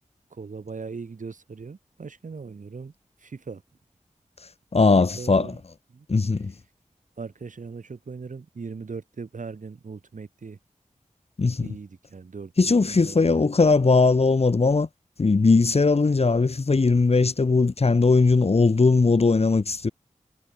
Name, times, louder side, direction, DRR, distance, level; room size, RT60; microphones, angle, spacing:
voice 1, 0.3-2.9 3.2-3.6 5.0-5.6 5.9-6.1 7.2-10.6 11.6-13.6, right 4 dB, 80° right, 3.0 m, -39 dB
voice 2, 4.7-5.5 6.1-6.5 11.4-11.7 12.6-14.9 15.2-19.9, left 4 dB, 55° left, 1.3 m, -19 dB
wide cardioid pair, 60°, 13 cm